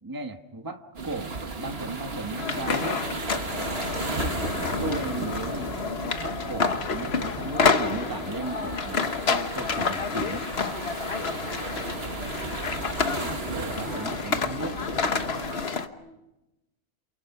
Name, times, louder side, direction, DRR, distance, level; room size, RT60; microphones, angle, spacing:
voice 1, 0.0-3.0 4.8-5.8 6.2-10.4 13.2-14.8, right 2 dB, 20° right, 5 dB, 1.4 m, -36 dB
sound 1, 1.0-15.7, right 3 dB, 60° right, 1.9 m, -35 dB
sound 2, 2.4-15.9, left 5 dB, 65° left, 1.4 m, -29 dB
voice 2, 11.2-11.9 13.4-14.3 15.7-16.2, right 3 dB, 85° right, -3 dB, 3.6 m, -49 dB
28.5 x 28.5 x 6.0 m, 0.95 s
omnidirectional pair, 1.2 m